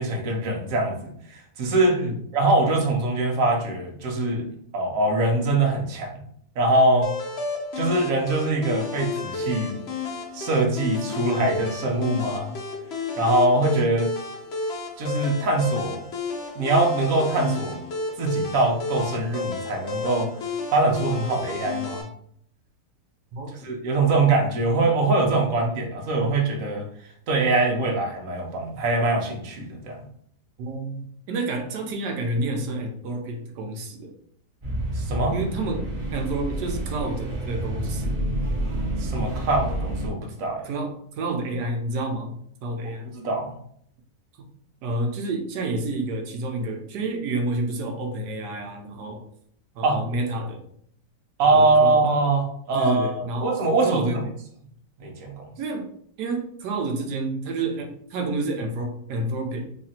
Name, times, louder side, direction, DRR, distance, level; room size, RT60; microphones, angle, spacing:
voice 1, 0.0-2.0 2.3-4.4 4.7-6.1 6.6-7.1 7.8-9.8 10.3-12.5 13.2-14.1 15.0-16.1 16.6-17.8 18.2-20.3 20.7-22.1 23.6-26.9 27.3-30.0 34.9-35.3 39.0-40.6 43.1-43.6 49.8-50.0 51.4-54.1 55.0-55.5, right 2 dB, 55° right, 1 dB, 1.0 m, -23 dB
sound 1, 7.0-22.0, left 4 dB, 55° left, 0.7 m, -32 dB
voice 2, 30.6-34.1 35.3-35.9 36.1-38.2 40.6-43.1 44.4-44.5 44.8-49.2 49.7-50.6 51.5-52.0 52.7-53.5 53.8-54.3 55.6-55.9 56.2-59.7, right 2 dB, 80° right, 3 dB, 1.2 m, -29 dB
sound 2, 34.6-40.1, right 1 dB, 20° right, 1.0 m, -29 dB
3.1 x 2.4 x 4.1 m, 0.66 s
omnidirectional pair, 1.8 m